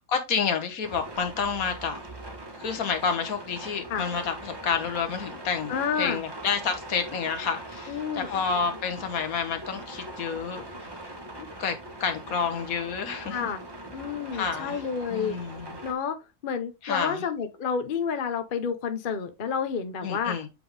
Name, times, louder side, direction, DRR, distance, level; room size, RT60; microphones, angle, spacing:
voice 1, 0.1-2.0 2.6-10.6 11.6-11.7 12.0-13.5 14.3-14.8 15.1-15.8 16.8-17.2 20.0-20.5, left 6 dB, 65° left, 1.5 m, -29 dB
sound 1, 0.8-15.9, right 1 dB, 20° right, 1.0 m, -41 dB
voice 2, 5.7-6.2 7.9-8.3 11.4-11.5 13.3-13.6 13.9-15.4 15.8-16.2 16.4-20.4, left 6 dB, 45° left, 0.8 m, -30 dB
7.7 x 3.7 x 3.3 m
omnidirectional pair, 1.6 m